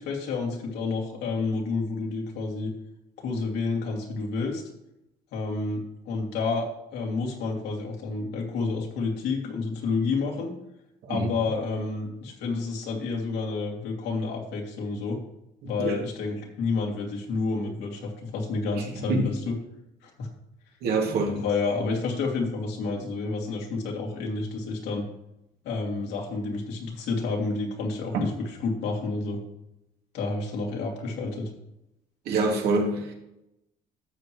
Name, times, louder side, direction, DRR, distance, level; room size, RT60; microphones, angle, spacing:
voice 1, 0.0-2.7 3.2-4.6 5.3-10.5 11.1-15.2 15.6-19.5 20.0-20.3 21.3-25.0 25.6-29.4 30.1-31.5, left 3 dB, 85° left, 0 dB, 2.6 m, -29 dB
voice 2, 20.8-21.4 28.1-28.3 32.3-33.1, right 3 dB, 75° right, 1 dB, 2.4 m, -25 dB
12.5 x 7.5 x 3.1 m, 0.85 s
cardioid pair, 110°, 17 cm